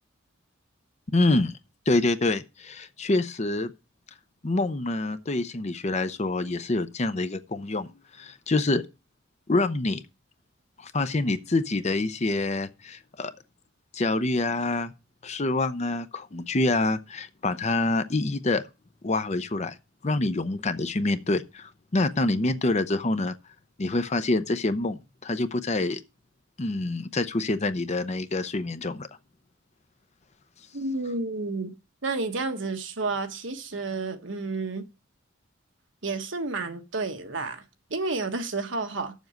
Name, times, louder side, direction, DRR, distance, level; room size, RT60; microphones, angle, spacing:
voice 1, 1.1-1.5 1.9-3.7 4.4-7.9 8.2-8.8 9.5-10.0 10.8-13.3 13.9-14.9 15.2-18.6 19.0-19.8 20.0-23.4 23.8-26.0 26.6-29.1, left 2 dB, 35° left, 0.6 m, -26 dB
voice 2, 30.7-31.7 32.0-34.8 36.0-37.6 37.9-39.1, right 3 dB, 65° right, 1.3 m, -30 dB
7.2 x 6.7 x 7.7 m
head